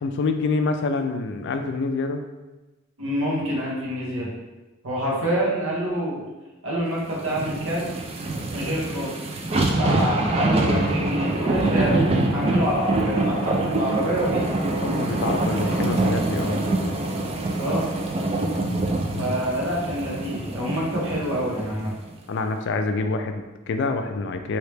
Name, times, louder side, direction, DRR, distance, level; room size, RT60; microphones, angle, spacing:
voice 1, 0.0-2.2 14.8-17.0 19.1-19.3 22.3-24.6, left 3 dB, 55° left, 7 dB, 0.3 m, -26 dB
voice 2, 3.0-4.3 4.8-6.2 6.6-7.9 8.5-9.1 9.8-11.9 12.3-14.4 17.6-17.9 19.2-21.9, equal, 80° right, -4 dB, 1.0 m, -26 dB
sound 1, 7.2-21.7 22.1-22.2, right 2 dB, 30° right, 0.3 m, -25 dB
3.1 x 2.8 x 3.3 m, 1.1 s
head